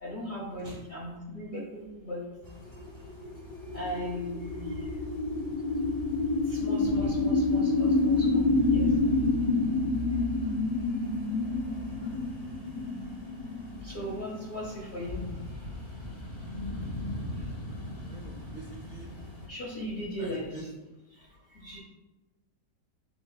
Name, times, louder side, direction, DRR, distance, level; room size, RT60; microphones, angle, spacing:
voice 1, 0.0-2.3 3.7-4.9 6.4-8.9 10.4-10.5 12.0-12.1 13.8-15.3 16.7-16.8 17.3-17.5 19.4-20.7 21.1-21.8, equal, 45° left, -4 dB, 0.6 m, -38 dB
sound 1, 2.4-19.5, equal, 20° left, 0.9 m, -40 dB
sound 2, 2.8-14.9, left 3 dB, 70° left, 1.0 m, -28 dB
voice 2, 18.0-19.1 20.2-20.6, right 3 dB, 55° right, -4 dB, 0.5 m, -46 dB
7.1 x 2.7 x 2.2 m, 1.0 s
omnidirectional pair, 1.8 m